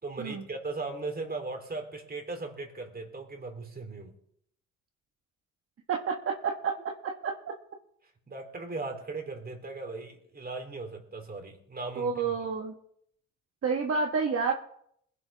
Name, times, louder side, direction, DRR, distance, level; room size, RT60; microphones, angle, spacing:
voice 1, 0.0-4.1 8.3-12.3, right 3 dB, 30° right, 3 dB, 3.4 m, -38 dB
voice 2, 5.9-6.7 7.0-7.3 12.0-12.7 13.6-14.5, right 5 dB, 50° right, 2 dB, 1.6 m, -29 dB
20.5 x 10.5 x 3.5 m, 0.69 s
cardioid pair, 90°, 30 cm